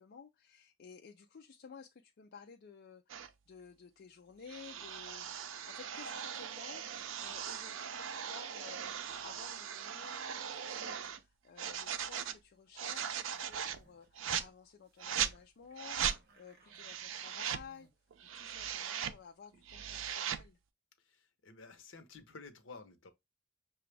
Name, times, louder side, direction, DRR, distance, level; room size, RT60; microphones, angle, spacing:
voice 1, 0.0-17.9 18.3-20.6, left 6 dB, 55° left, 0.4 m, -55 dB
sound 1, 3.1-3.3 4.5-11.2 11.6-12.4 12.8-13.8 14.2-14.5 15.0-15.4 15.8-16.2 16.7-17.7 18.1-19.2 19.5-20.4, right 8 dB, 85° right, 0.5 m, -39 dB
sound 2, 13.3-14.1 14.4-14.5 14.8-15.0 15.3-17.9, right 2 dB, 55° right, 1.2 m, -65 dB
voice 2, 21.0-23.1, left 4 dB, 75° left, 0.8 m, -53 dB
5.9 x 2.4 x 3.2 m
head